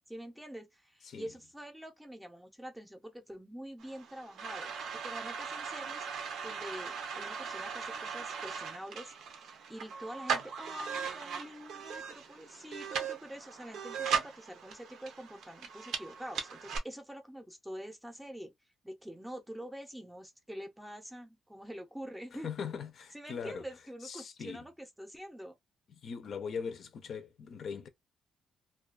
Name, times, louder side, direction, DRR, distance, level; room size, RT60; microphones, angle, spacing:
voice 1, 0.1-18.5 18.8-22.5 23.1-25.6, equal, 5° right, 0.6 m, -46 dB
sound 1, 3.8-16.8, right 6 dB, 80° right, 0.6 m, -39 dB
voice 2, 22.4-23.6 24.0-24.6 26.0-27.9, left 6 dB, 55° left, 0.5 m, -40 dB
2.3 x 2.2 x 2.3 m
cardioid pair, 135°, 0 cm